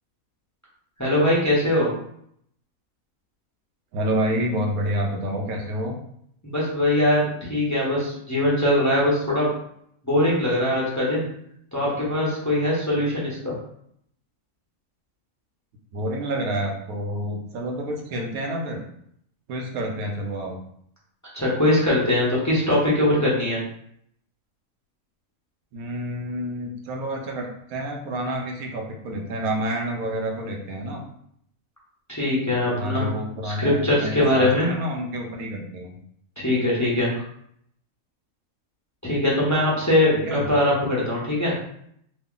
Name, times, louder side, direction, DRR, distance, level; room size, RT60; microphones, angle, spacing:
voice 1, 1.0-1.9 6.4-9.5 10.0-11.3 11.7-13.5 21.3-23.6 32.1-33.1 33.4-34.7 36.4-37.2 39.0-41.5, left 1 dB, 15° left, -7 dB, 0.7 m, -21 dB
voice 2, 3.9-6.0 15.9-18.8 19.5-20.6 25.7-31.1 32.7-36.0 40.1-40.5, equal, 85° right, 1 dB, 1.2 m, -28 dB
3.1 x 2.3 x 3.7 m, 0.70 s
omnidirectional pair, 1.5 m